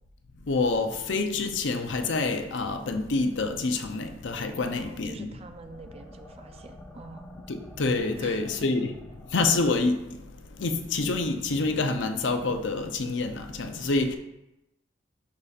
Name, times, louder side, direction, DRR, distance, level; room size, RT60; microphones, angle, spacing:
voice 1, 0.5-5.3 7.5-8.9 9.3-10.0 10.6-14.2, left 3 dB, 70° left, 0.6 m, -27 dB
sound 1, 4.3-9.7, equal, 10° left, 0.8 m, -49 dB
voice 2, 4.6-7.2 8.2-8.4, right 3 dB, 35° right, 0.5 m, -45 dB
11.5 x 4.2 x 2.5 m
head